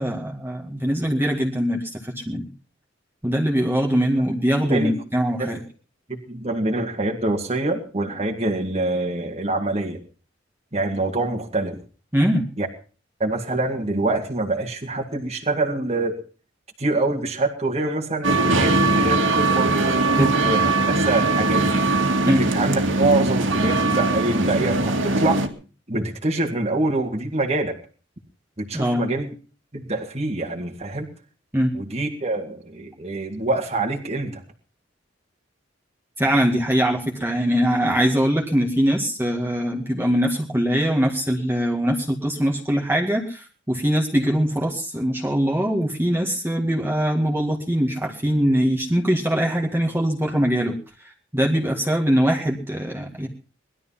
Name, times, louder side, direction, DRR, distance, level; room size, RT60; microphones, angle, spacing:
voice 1, 0.0-2.5 3.2-5.6 12.1-12.4 20.2-20.3 22.3-22.4 28.7-29.0 31.5-31.7 36.2-50.7 51.0-53.3, equal, 10° right, 0 dB, 2.0 m, -22 dB
voice 2, 6.1-10.0 10.7-11.8 12.6-12.7 13.2-16.2 16.8-19.7 20.1-22.0 22.2-25.4 25.9-27.8 28.6-29.3 29.7-31.1 31.7-34.4, right 2 dB, 35° right, 1 dB, 2.1 m, -25 dB
sound 1, 18.2-25.5, right 2 dB, 75° right, 2.3 m, -20 dB
20.0 x 12.5 x 5.7 m, 0.39 s
head